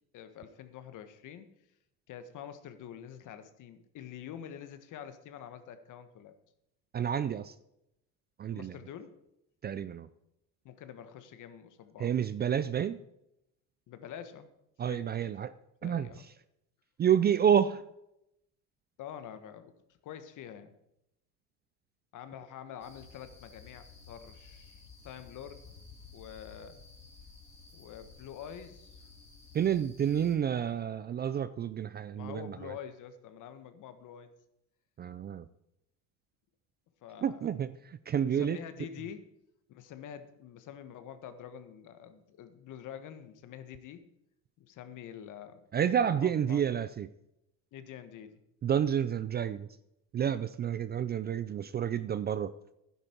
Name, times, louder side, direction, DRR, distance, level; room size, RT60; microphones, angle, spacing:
voice 1, 0.1-1.5 2.1-6.3 8.5-9.2 10.6-12.1 13.9-14.5 14.8-15.0 15.8-16.3 19.0-19.7 20.0-20.7 22.1-25.6 26.1-26.8 27.7-29.0 32.1-34.3 37.0-37.5 38.2-39.2 39.7-44.0 44.6-45.6 45.9-46.6 47.7-48.4, left 9 dB, 55° left, 10 dB, 1.4 m, -46 dB
voice 2, 6.9-7.5 8.4-8.7 9.6-10.1 12.0-13.0 14.8-15.5 15.8-16.1 17.0-17.8 29.5-32.7 35.0-35.5 37.2-38.6 45.7-47.1 48.6-49.7 50.1-52.5, right 9 dB, 30° right, 14 dB, 0.4 m, -29 dB
sound 1, 22.8-30.3, left 4 dB, 15° left, 3.5 m, -53 dB
12.0 x 10.0 x 4.5 m, 0.84 s
supercardioid pair, 100°, 37 cm